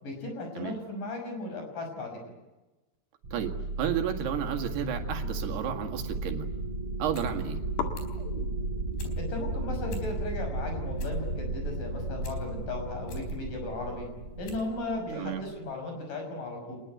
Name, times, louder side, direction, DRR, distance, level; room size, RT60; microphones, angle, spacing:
voice 1, 0.0-2.2 9.2-14.1 14.4-16.8, left 2 dB, 55° left, 4 dB, 7.4 m, -36 dB
sound 1, 3.2-15.5, right 2 dB, 35° right, 5.4 m, -34 dB
voice 2, 3.3-6.5 7.0-7.6 15.1-15.4, right 9 dB, 75° right, 4 dB, 4.1 m, -32 dB
sound 2, 4.3-6.0 6.3-6.9 7.2-7.3 7.7-14.6, left 7 dB, 90° left, 4.1 m, -45 dB
sound 3, 7.0-7.3 7.6-8.2 8.6-9.2 9.6-9.7 9.9-10.4 10.8-12.4 12.8-13.3 13.9-14.0 14.4-14.7 15.0-15.1, left 5 dB, 75° left, 6.0 m, -43 dB
28.0 x 20.5 x 9.2 m, 1.1 s
omnidirectional pair, 4.7 m